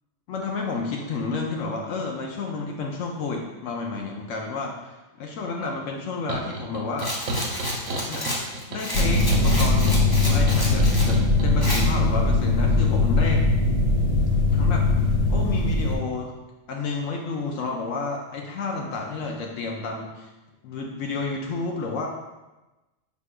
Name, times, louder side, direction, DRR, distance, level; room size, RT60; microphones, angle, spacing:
voice 1, 0.3-7.2 8.1-13.4 14.5-16.3 16.7-20.3 20.6-22.1, left 4 dB, 75° left, 1 dB, 0.9 m, -31 dB
sound 1, 6.3-11.5, right 1 dB, 75° right, 0.9 m, -34 dB
Rattle, 7.0-11.1 11.6-11.8, left 1 dB, 25° left, 0.5 m, -31 dB
sound 2, 8.9-16.0, left 2 dB, 50° left, 1.0 m, -20 dB
6.0 x 3.5 x 2.2 m, 1.1 s
omnidirectional pair, 1.4 m